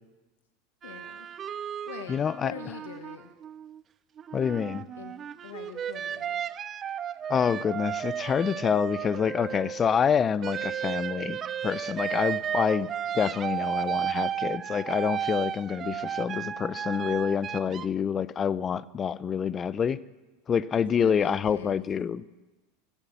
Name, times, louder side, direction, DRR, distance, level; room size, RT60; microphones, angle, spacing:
voice 1, 0.8-1.3 1.9-3.3 5.0-5.1 5.4-6.4 20.9-21.8, left 8 dB, 85° left, 7 dB, 1.1 m, -43 dB
sound 1, 0.8-3.8 4.2-10.0 10.4-17.9, right 9 dB, 35° right, 0.5 m, -34 dB
voice 2, 2.1-2.5 4.3-4.9 7.3-11.4 11.6-20.0 20.5-22.2, left 7 dB, 30° left, 18 dB, 0.6 m, -27 dB
15.5 x 11.5 x 6.9 m, 1.2 s
hypercardioid pair, 105°, 0 cm